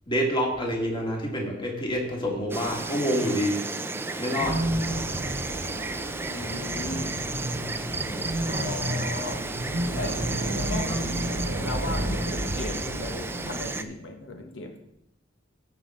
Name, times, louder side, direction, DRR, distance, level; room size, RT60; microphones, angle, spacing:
voice 1, 0.1-3.6 4.2-4.6, equal, 25° left, 0 dB, 2.0 m, -27 dB
Insect, 2.5-13.8, right 3 dB, 10° right, 0.5 m, -33 dB
sound 1, 4.4-13.6, right 1 dB, 90° right, 1.5 m, -31 dB
voice 2, 6.3-7.2 8.4-9.5 9.9-10.2 10.5-11.2 11.6-14.8, left 2 dB, 65° left, 4 dB, 1.2 m, -36 dB
15.5 x 5.6 x 3.7 m, 0.78 s
head